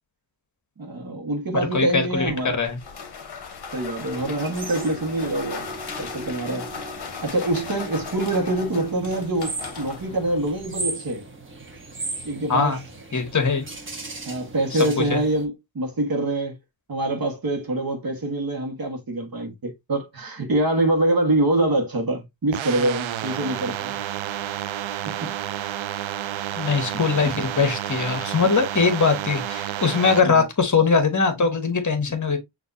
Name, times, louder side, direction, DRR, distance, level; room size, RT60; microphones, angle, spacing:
voice 1, 0.8-2.5 3.7-5.7 6.0-6.7 7.2-11.2 12.2-12.8 14.3-16.6 16.9-24.0 25.1-25.4 30.2-30.4, right 1 dB, 50° right, 1.3 m, -25 dB
voice 2, 1.7-2.8 12.5-12.8 13.1-13.6 14.8-15.2 26.6-32.4, left 5 dB, 40° left, 1.4 m, -21 dB
sound 1, 2.1-10.9, left 6 dB, 60° left, 1.0 m, -38 dB
sound 2, 4.1-15.5, right 3 dB, 25° right, 1.1 m, -37 dB
sound 3, 22.5-30.2, right 12 dB, 90° right, 0.5 m, -30 dB
5.9 x 2.8 x 2.6 m
wide cardioid pair, 90°, 46 cm